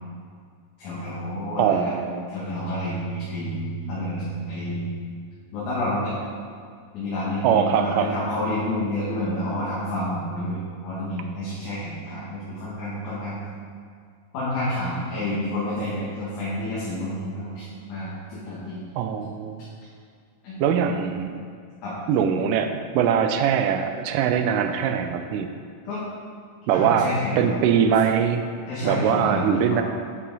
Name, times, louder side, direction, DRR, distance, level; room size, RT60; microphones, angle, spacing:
voice 1, 0.8-1.9 2.3-5.0 5.5-6.1 6.9-13.4 14.3-18.8 20.4-20.6 21.8-22.0 25.9-26.0 26.7-27.6 28.7-29.8, left 1 dB, 65° left, -9 dB, 2.7 m, -29 dB
voice 2, 1.6-2.2 7.4-8.1 19.0-19.7 20.6-21.4 22.1-25.5 26.7-28.4 28.8-29.8, right 8 dB, 80° right, 7 dB, 2.1 m, -22 dB
9.3 x 5.6 x 4.0 m, 2.1 s
omnidirectional pair, 4.0 m